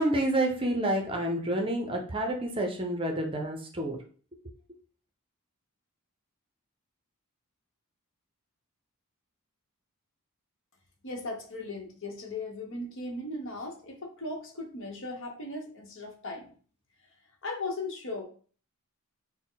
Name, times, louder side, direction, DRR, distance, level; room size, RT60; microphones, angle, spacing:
voice 1, 0.0-4.0, right 1 dB, 25° right, 3 dB, 0.6 m, -28 dB
voice 2, 11.0-16.5 17.4-18.2, left 2 dB, 60° left, 1 dB, 1.0 m, -37 dB
4.2 x 2.1 x 3.8 m, 0.42 s
head